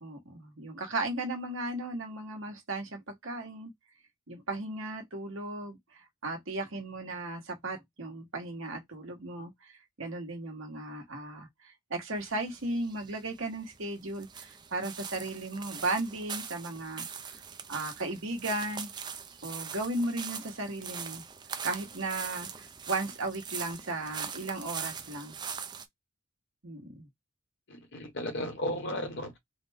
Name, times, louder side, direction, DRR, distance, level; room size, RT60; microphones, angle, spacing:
voice 1, 0.0-3.7 4.3-17.4 17.7-18.9 19.4-21.2 21.6-25.3 26.6-27.1, right 2 dB, 65° right, 1.2 m, -36 dB
sound 1, 12.2-25.9, right 6 dB, 20° right, 0.4 m, -42 dB
voice 2, 27.7-29.4, left 1 dB, 60° left, 1.3 m, -35 dB
4.0 x 2.2 x 3.4 m
head